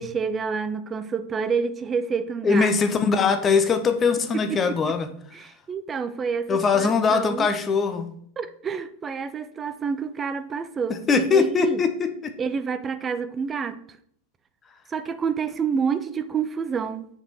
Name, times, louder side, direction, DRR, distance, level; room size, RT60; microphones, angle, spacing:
voice 1, 0.0-2.7 5.3-7.5 8.4-11.8 12.4-13.8 14.9-17.1, right 6 dB, 20° right, 12 dB, 0.6 m, -28 dB
voice 2, 2.4-5.1 5.4-5.5 6.5-8.1 10.9-12.3, left 5 dB, 20° left, 8 dB, 1.0 m, -21 dB
6.6 x 5.3 x 5.9 m, 0.66 s
figure-of-eight pair, 90°, 0 cm